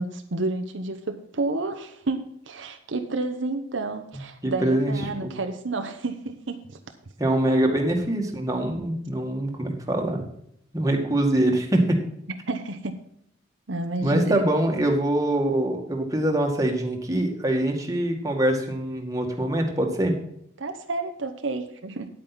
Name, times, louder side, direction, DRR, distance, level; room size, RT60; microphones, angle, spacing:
voice 1, 0.0-6.8 7.5-7.8 12.5-13.0 13.7-14.4 20.6-22.1, right 2 dB, 75° right, 6 dB, 1.0 m, -30 dB
voice 2, 4.4-5.3 7.2-10.2 10.7-12.0 14.0-20.2, right 1 dB, 20° right, 1 dB, 2.0 m, -24 dB
9.7 x 8.9 x 4.3 m, 0.71 s
head